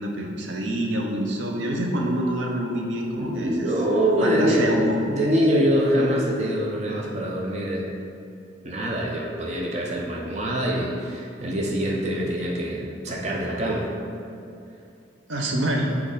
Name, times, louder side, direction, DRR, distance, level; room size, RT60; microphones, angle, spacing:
voice 1, 0.0-3.7 4.2-5.0 15.3-15.9, right 1 dB, 80° right, 1 dB, 0.7 m, -26 dB
voice 2, 3.2-7.9 8.6-13.9, equal, 35° right, -2 dB, 0.7 m, -24 dB
6.4 x 4.6 x 3.9 m, 2.6 s
head